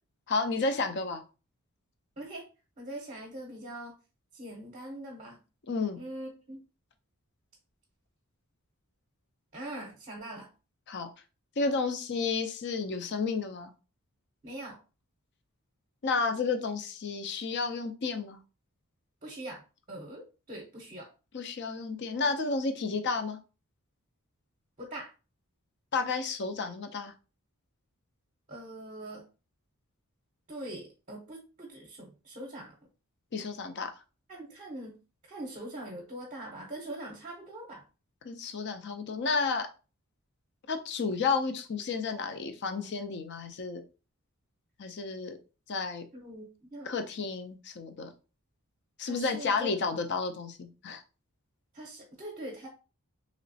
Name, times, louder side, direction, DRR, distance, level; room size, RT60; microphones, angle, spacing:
voice 1, 0.3-1.2 5.7-6.0 10.9-11.1 11.6-13.7 16.0-18.4 21.3-23.4 25.9-27.1 33.3-33.9 38.2-39.7 40.7-43.8 44.8-45.4 45.7-46.0 46.8-48.1 49.0-51.0, left 4 dB, 50° left, 7 dB, 0.5 m, -31 dB
voice 2, 2.8-3.9 4.4-5.4 6.0-6.6 9.5-10.5 14.4-14.8 19.2-19.6 19.9-20.2 20.5-21.1 24.8-25.1 28.5-29.2 30.5-32.7 34.3-35.0 35.3-37.8 46.1-46.5 46.7-46.9 49.0-49.7 51.7-52.7, right 1 dB, 35° right, 0 dB, 0.7 m, -42 dB
3.0 x 2.9 x 2.7 m, 0.33 s
head